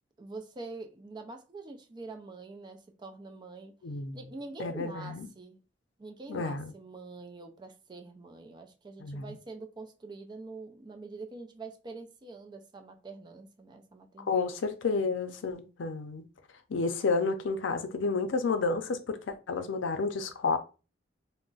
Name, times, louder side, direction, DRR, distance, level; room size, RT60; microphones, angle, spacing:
voice 1, 0.2-3.7 4.1-5.6 6.0-14.4, right 3 dB, 25° right, 0.4 m, -45 dB
voice 2, 3.8-4.2 4.6-5.3 6.3-6.7 9.0-9.4 14.3-16.2 16.7-20.6, left 4 dB, 90° left, 0.5 m, -31 dB
2.4 x 2.0 x 3.8 m
head